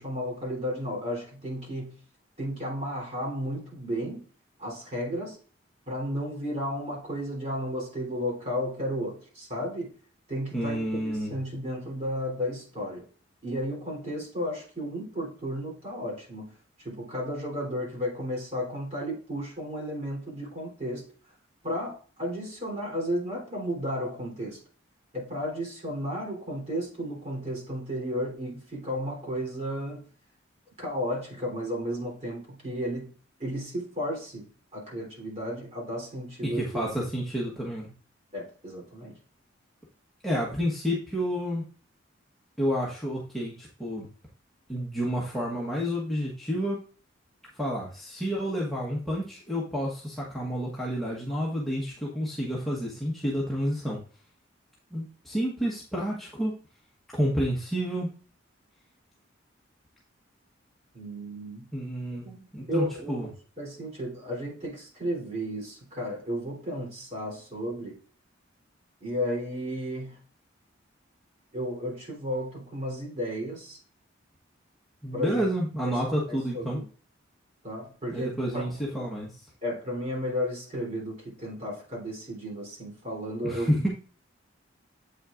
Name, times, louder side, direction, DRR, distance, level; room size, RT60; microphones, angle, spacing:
voice 1, 0.0-1.9 2.4-4.2 4.6-5.4 5.9-9.9 10.3-13.0 13.4-16.5 16.8-21.0 21.6-24.6 25.1-30.0 30.8-33.1 33.4-36.6 38.3-39.1 60.9-61.7 62.2-63.3 63.6-68.0 69.0-70.2 71.5-73.8 75.1-75.4 75.8-76.9 77.6-78.7 78.9-79.0 79.6-83.8, equal, 35° right, -3 dB, 3.3 m, -33 dB
voice 2, 10.5-11.4 36.4-37.9 40.2-41.6 42.6-44.1 44.7-46.8 47.5-54.0 54.9-56.5 57.1-58.1 61.7-63.3 75.0-76.8 78.1-79.4 83.4-83.9, equal, ahead, -5 dB, 1.2 m, -30 dB
8.2 x 6.1 x 2.5 m, 0.39 s
head